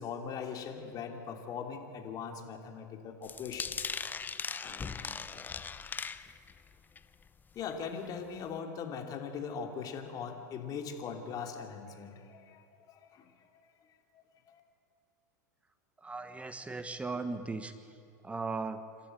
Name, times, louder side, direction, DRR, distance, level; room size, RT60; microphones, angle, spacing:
voice 1, 0.0-3.9 4.2-4.3 4.6-5.6 7.5-13.5 13.9-14.6, left 6 dB, 40° left, 5 dB, 3.0 m, -41 dB
sound 1, 3.2-6.6 7.0-7.3 7.7-7.8 8.1-8.2, left 5 dB, 20° left, 0.8 m, -39 dB
voice 2, 16.0-17.7 18.2-18.8, right 3 dB, 15° right, 10 dB, 1.4 m, -37 dB
27.0 x 13.0 x 9.2 m, 2.5 s
hypercardioid pair, 95°, 10 cm